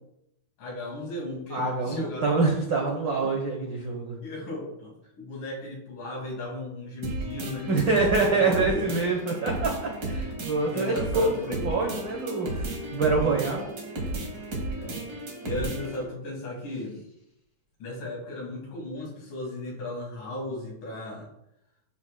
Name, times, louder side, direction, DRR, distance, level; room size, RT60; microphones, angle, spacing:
voice 1, 0.6-2.3 3.2-3.3 4.2-7.7 8.4-8.9 10.7-11.8 14.8-15.1 15.4-17.0 17.8-21.3, left 1 dB, 80° left, -3 dB, 3.8 m, -36 dB
voice 2, 1.5-4.2 7.7-13.7, right 3 dB, 70° right, 0 dB, 1.1 m, -26 dB
sound 1, 7.0-16.0, right 1 dB, 45° right, 1.3 m, -34 dB
10.5 x 6.2 x 2.2 m, 0.82 s
omnidirectional pair, 3.6 m